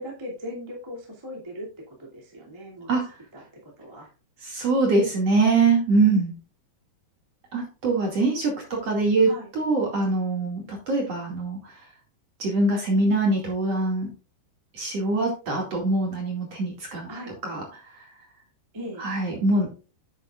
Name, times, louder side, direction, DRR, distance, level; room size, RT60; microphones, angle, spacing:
voice 1, 0.0-2.9 3.3-4.1 9.2-9.5 17.1-17.3 18.7-19.0, equal, 10° right, -3 dB, 1.5 m, -39 dB
voice 2, 4.4-6.3 7.5-11.7 12.4-14.1 14.7-17.1 17.4-17.6 18.0-18.1 19.0-19.7, right 3 dB, 45° right, -1 dB, 2.8 m, -23 dB
9.6 x 8.7 x 2.4 m, 0.34 s
omnidirectional pair, 4.8 m